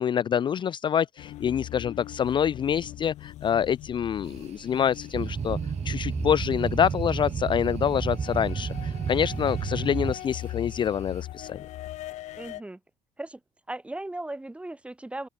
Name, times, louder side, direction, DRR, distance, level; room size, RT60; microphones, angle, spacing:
voice 1, 0.0-5.6 5.8-11.6, left 8 dB, 40° left, 0.5 m, -26 dB
sound 1, 1.2-12.6, left 15 dB, 80° left, 1.5 m, -41 dB
sound 2, 4.2-11.2, right 12 dB, 70° right, 4.6 m, -52 dB
Boat Water vehicle, 5.1-10.1, right 6 dB, 30° right, 0.4 m, -31 dB
voice 2, 12.3-12.8 13.2-13.4 13.7-15.3, right 2 dB, 10° right, 2.1 m, -37 dB
cardioid pair, 105°, 12 cm